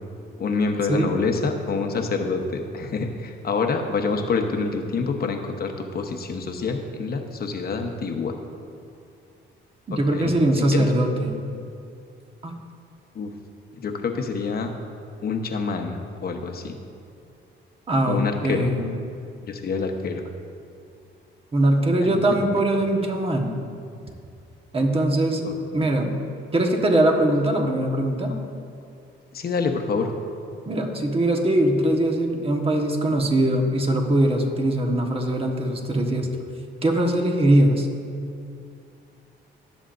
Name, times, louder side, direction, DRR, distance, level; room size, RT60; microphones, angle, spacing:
voice 1, 0.4-8.4 9.9-10.3 10.7-10.9 13.1-13.3 13.8-14.7 15.2-16.8 18.0-18.7 19.4-20.2 22.0-22.3 25.4-25.5 29.3-30.1, left 4 dB, 50° left, 4 dB, 1.0 m, -27 dB
voice 2, 9.9-11.4 12.4-12.5 17.9-18.9 21.5-23.5 24.7-26.2 26.5-28.4 30.6-36.3 36.8-37.9, right 1 dB, 30° right, 2 dB, 1.4 m, -21 dB
18.5 x 7.3 x 2.6 m, 2.5 s
cardioid pair, 90°, 20 cm